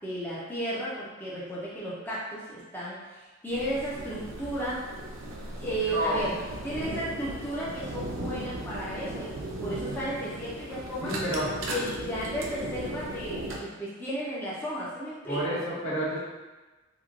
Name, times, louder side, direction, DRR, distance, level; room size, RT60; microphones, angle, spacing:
voice 1, 0.0-3.0 3.4-4.8 5.6-6.3 6.6-11.2 11.6-15.6, right 1 dB, 10° left, -8 dB, 0.5 m, -34 dB
sound 1, 3.5-13.6, right 1 dB, 75° right, 0.5 m, -37 dB
voice 2, 5.9-6.2 11.0-11.5 15.3-16.2, equal, 85° left, -8 dB, 1.3 m, -29 dB
3.0 x 2.2 x 3.6 m, 1.2 s
head